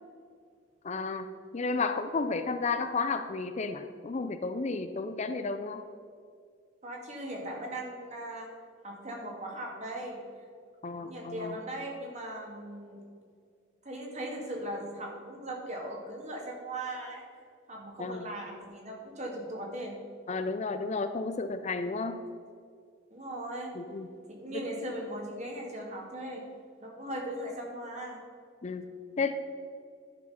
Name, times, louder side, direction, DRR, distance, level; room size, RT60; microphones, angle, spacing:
voice 1, 0.8-1.3 1.5-5.8 10.8-11.6 18.0-18.3 20.3-22.3 23.8-24.1 24.5-24.6 28.6-28.9 29.2-29.3, left 4 dB, 35° left, 9 dB, 0.5 m, -32 dB
voice 2, 6.8-8.5 8.8-10.2 11.0-13.0 13.8-17.2 17.7-20.0 23.1-23.7 24.3-26.4 26.8-28.2, right 1 dB, 35° right, -1 dB, 2.1 m, -38 dB
11.0 x 6.1 x 5.7 m, 2.2 s
head